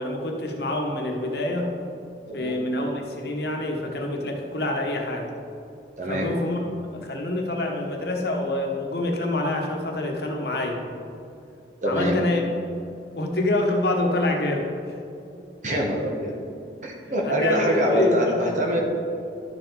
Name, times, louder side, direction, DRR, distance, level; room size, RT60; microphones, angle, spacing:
voice 1, 0.0-1.7 2.3-5.3 6.1-6.7 6.9-10.8 11.8-12.4 13.2-14.7 17.0-18.5, left 2 dB, 60° left, 1 dB, 1.2 m, -26 dB
voice 2, 6.0-6.3 11.8-12.2 15.6-16.3 16.8-18.8, equal, 40° right, 0 dB, 1.3 m, -24 dB
11.5 x 7.0 x 4.0 m, 2.6 s
head